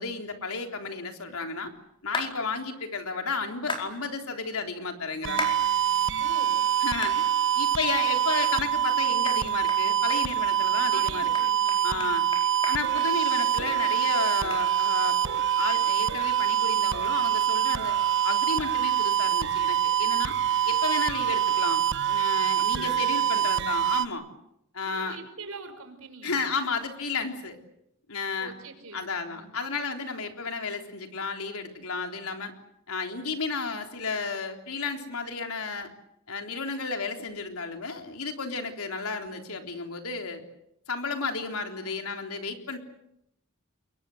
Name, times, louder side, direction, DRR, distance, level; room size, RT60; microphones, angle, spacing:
voice 1, 0.0-1.7 2.0-5.5 6.8-7.3 7.6-11.3 11.8-12.2 12.7-17.9 18.2-20.3 20.6-21.8 22.1-24.3 24.7-25.2 26.2-27.6 28.1-28.5 28.9-32.5 32.9-35.9 36.3-40.4 40.9-42.8, left 4 dB, 85° left, 4 dB, 3.6 m, -33 dB
sound 1, 2.1-2.3 3.7-3.9 5.4-5.6 6.1-6.2 7.0-7.2 7.7-7.8 8.4-8.5 8.8-8.9 9.3-9.4 9.7-9.8 10.1-10.6 10.9-11.0 11.3-13.7 14.0-14.1 14.5-14.6, left 2 dB, 25° left, 4.7 m, -35 dB
sound 2, 5.2-24.1, right 10 dB, 60° right, 1.1 m, -25 dB
voice 2, 6.2-6.6 10.9-12.3 22.6-23.0 24.8-26.5 28.4-29.5, right 4 dB, 80° right, 8 dB, 5.4 m, -43 dB
28.0 x 23.0 x 7.8 m, 0.80 s
head